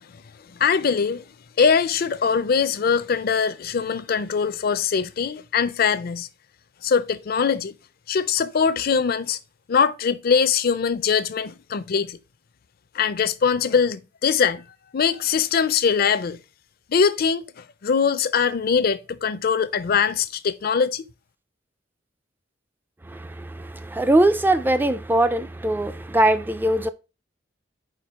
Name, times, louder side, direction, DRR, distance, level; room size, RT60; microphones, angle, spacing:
voice 1, 0.5-1.2 1.6-6.3 6.8-7.7 8.1-9.4 9.7-12.2 12.9-14.7 14.9-16.4 16.9-21.0, left 6 dB, 55° left, 0.4 m, -22 dB
voice 2, 23.1-26.9, right 1 dB, 10° right, 0.3 m, -21 dB
4.7 x 4.5 x 4.7 m
head